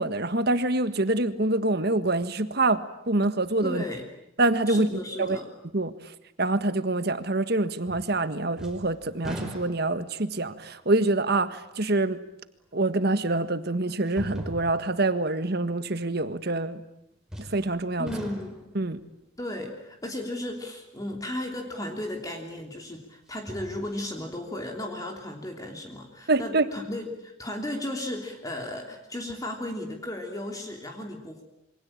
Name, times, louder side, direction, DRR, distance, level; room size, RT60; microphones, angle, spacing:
voice 1, 0.0-3.8 4.4-5.4 5.7-5.9 6.4-12.2 12.7-16.8 17.5-18.1 18.7-19.0 26.3-26.6, right 2 dB, 55° right, 11 dB, 1.6 m, -26 dB
voice 2, 3.6-4.0 4.7-5.5 18.0-18.6 19.4-31.4, left 1 dB, 20° left, 2 dB, 3.2 m, -35 dB
sound 1, 7.9-8.3 8.6-10.1 10.8-10.9 12.7-12.8 14.1-15.0 17.3-17.7 18.1-18.8 21.8-21.9 23.3-24.2 24.6-24.7, equal, 5° right, 4.8 m, -40 dB
27.5 x 24.5 x 8.8 m, 0.81 s
head